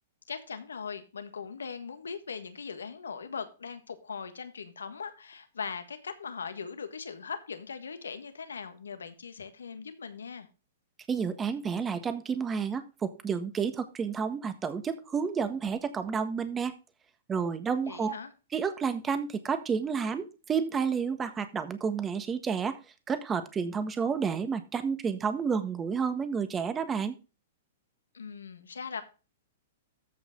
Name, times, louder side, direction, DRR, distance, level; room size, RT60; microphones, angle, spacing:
voice 1, 0.3-10.5 17.8-18.3 28.1-29.0, left 6 dB, 85° left, 10 dB, 1.5 m, -40 dB
voice 2, 11.1-16.7 17.3-18.1 18.5-22.8 23.1-27.2, right 6 dB, 20° right, 10 dB, 1.5 m, -30 dB
14.0 x 5.5 x 3.8 m, 0.32 s
hypercardioid pair, 120°, 0 cm